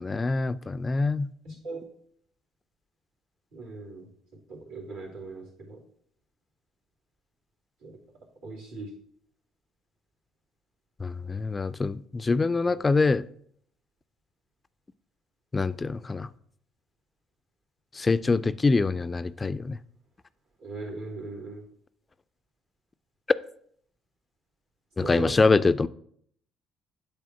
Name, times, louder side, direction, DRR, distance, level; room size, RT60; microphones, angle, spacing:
voice 1, 0.0-1.3 11.0-13.2 15.5-16.3 17.9-19.8 25.0-25.9, left 3 dB, 25° left, 0.3 m, -24 dB
voice 2, 1.4-1.8 3.5-4.1 4.5-5.8 7.8-8.0 8.4-8.9 12.6-12.8 20.6-21.6 25.0-25.3, right 3 dB, 85° right, 2.6 m, -38 dB
8.6 x 3.5 x 5.8 m
hypercardioid pair, 55°, 0 cm